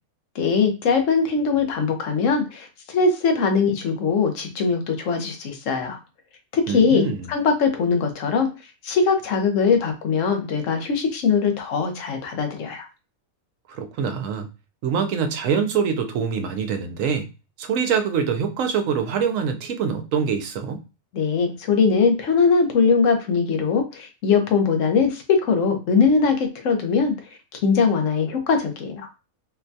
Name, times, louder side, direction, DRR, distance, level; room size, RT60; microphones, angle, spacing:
voice 1, 0.3-6.0 6.5-8.5 8.8-12.9 21.1-27.1 27.6-29.1, left 5 dB, 65° left, 4 dB, 1.1 m, -21 dB
voice 2, 6.7-7.3 13.7-14.5 14.8-17.3 17.6-20.8, right 6 dB, 70° right, 6 dB, 1.0 m, -24 dB
4.3 x 2.2 x 2.6 m, 0.29 s
omnidirectional pair, 1.5 m